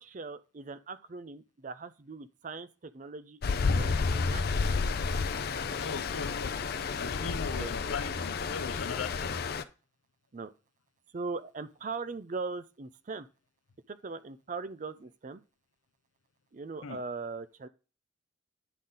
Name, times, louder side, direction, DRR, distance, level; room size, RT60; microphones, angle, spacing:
voice 1, 0.0-4.4 7.5-7.7 10.3-10.5 11.1-13.3 13.9-15.4 16.5-17.7, right 4 dB, 40° right, 0.4 m, -40 dB
Stream, 3.4-9.6, left 4 dB, 50° left, 0.5 m, -31 dB
voice 2, 5.8-6.5 7.0-9.3 16.8-17.0, left 5 dB, 90° left, 0.7 m, -39 dB
10.0 x 4.0 x 3.8 m
head